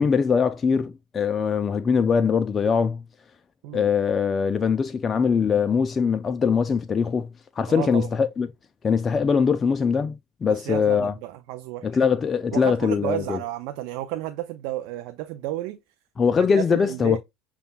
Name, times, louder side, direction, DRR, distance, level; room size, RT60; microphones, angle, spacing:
voice 1, 0.0-3.0 3.7-7.3 7.6-8.5 8.8-11.1 11.8-13.4 16.2-17.2, left 6 dB, 30° left, 0.3 m, -22 dB
voice 2, 7.7-8.1 10.5-11.9 12.5-15.8 16.5-17.2, right 14 dB, 65° right, 0.4 m, -32 dB
6.7 x 2.3 x 2.3 m
hypercardioid pair, 90°, 0 cm